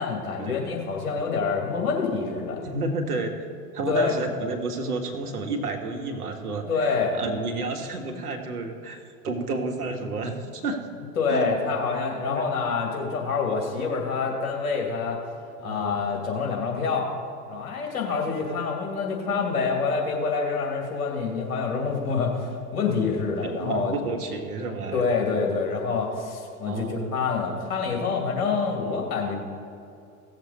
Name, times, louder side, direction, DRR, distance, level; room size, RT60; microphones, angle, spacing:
voice 1, 0.0-2.6 3.9-4.1 6.7-7.2 11.2-15.2 15.6-17.1 17.5-24.0 24.9-29.3, left 5 dB, 65° left, 0 dB, 2.6 m, -26 dB
voice 2, 2.6-3.3 3.7-10.8 11.3-11.5 12.3-12.5 15.6-16.0 23.4-25.2 26.6-27.1, right 3 dB, 75° right, 4 dB, 1.6 m, -31 dB
17.0 x 7.4 x 4.1 m, 2.5 s
figure-of-eight pair, 95°, 46 cm